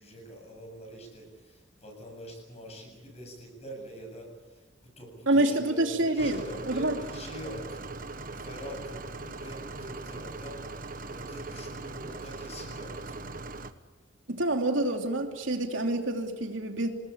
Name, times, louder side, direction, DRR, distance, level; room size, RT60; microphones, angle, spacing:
voice 1, 0.0-4.6 5.0-13.3, equal, 35° left, 2 dB, 7.9 m, -45 dB
voice 2, 5.3-7.0 14.3-16.9, right 1 dB, 85° right, 3 dB, 3.0 m, -27 dB
sound 1, 6.2-13.7, right 3 dB, 45° right, 1.2 m, -40 dB
27.5 x 19.5 x 8.7 m, 1.2 s
head